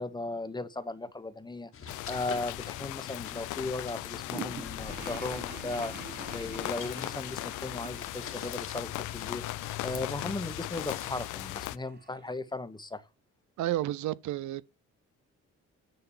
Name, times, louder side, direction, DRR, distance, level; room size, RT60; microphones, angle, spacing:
voice 1, 0.0-9.4 9.8-13.0, left 2 dB, 15° left, 1.2 m, -37 dB
sound 1, 1.7-11.3, left 6 dB, 45° left, 1.7 m, -47 dB
sound 2, 1.9-11.8, left 18 dB, 90° left, 0.5 m, -38 dB
sound 3, 4.3-12.3, right 5 dB, 35° right, 1.5 m, -47 dB
voice 2, 13.6-14.6, right 14 dB, 70° right, 0.6 m, -31 dB
10.0 x 3.9 x 7.2 m
cardioid pair, 90°, 30 cm